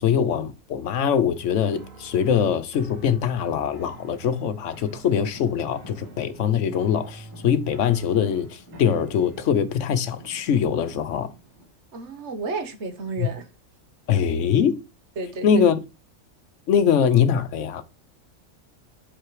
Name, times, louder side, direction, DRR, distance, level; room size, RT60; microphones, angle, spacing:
voice 1, 0.0-11.3 13.2-13.3 14.1-14.8 15.4-15.8 16.7-17.8, left 8 dB, 65° left, 1.1 m, -22 dB
sound 1, 1.7-9.8, right 3 dB, 75° right, 1.6 m, -46 dB
Traffic noise roadway noise / Engine, 5.3-11.7, equal, 15° left, 2.3 m, -49 dB
voice 2, 11.9-13.5 15.2-15.5, right 3 dB, 60° right, 1.3 m, -32 dB
8.0 x 4.1 x 4.7 m
omnidirectional pair, 1.4 m